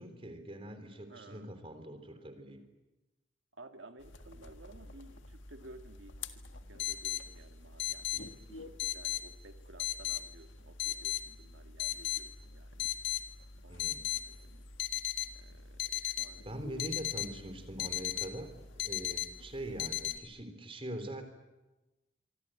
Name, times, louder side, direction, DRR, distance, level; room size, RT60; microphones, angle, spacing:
voice 1, 0.0-2.6 13.7-14.1 16.4-21.2, right 1 dB, 30° right, 8 dB, 3.6 m, -43 dB
voice 2, 1.1-1.6 3.6-6.4 6.7-12.9 13.6-14.7 15.3-16.5, right 2 dB, 80° right, 6 dB, 1.8 m, -55 dB
sound 1, 4.0-20.2, left 12 dB, 75° left, 1.7 m, -38 dB
25.5 x 25.0 x 9.1 m, 1.1 s
head